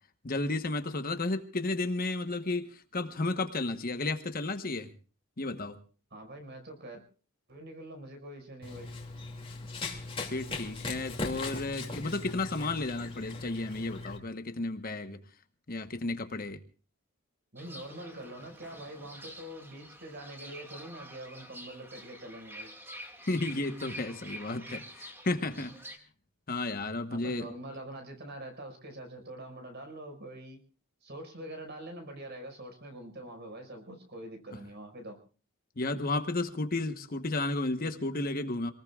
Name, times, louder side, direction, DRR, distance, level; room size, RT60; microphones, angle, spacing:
voice 1, 0.2-4.9 5.4-5.8 10.3-15.2 15.7-16.6 23.3-25.7 26.5-27.5 35.8-38.7, left 2 dB, 45° left, 8 dB, 1.2 m, -33 dB
voice 2, 6.1-7.0 7.5-8.9 17.5-22.7 27.1-30.6 31.0-35.2, right 1 dB, 50° right, 5 dB, 5.5 m, -44 dB
Run, 8.6-14.2, left 3 dB, 25° left, 2.6 m, -39 dB
Fowl / Bird, 17.6-26.0, equal, 10° right, 2.0 m, -47 dB
26.5 x 19.5 x 2.4 m, 0.36 s
head